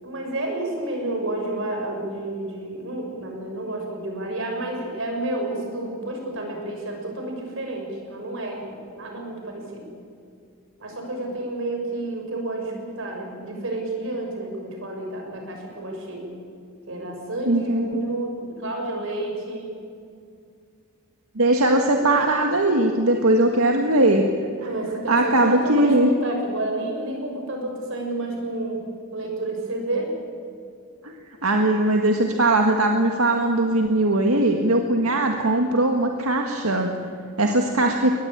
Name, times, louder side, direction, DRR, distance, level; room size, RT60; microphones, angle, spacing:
voice 1, 0.0-9.9 10.8-16.3 16.9-19.7 24.6-28.8 29.1-30.1, right 2 dB, 65° right, 2 dB, 6.2 m, -30 dB
voice 2, 17.4-18.0 21.3-24.3 25.1-26.1 31.0-31.1 31.4-36.9 37.4-38.1, right 1 dB, 90° right, 3 dB, 1.8 m, -20 dB
22.5 x 19.5 x 8.9 m, 2.4 s
head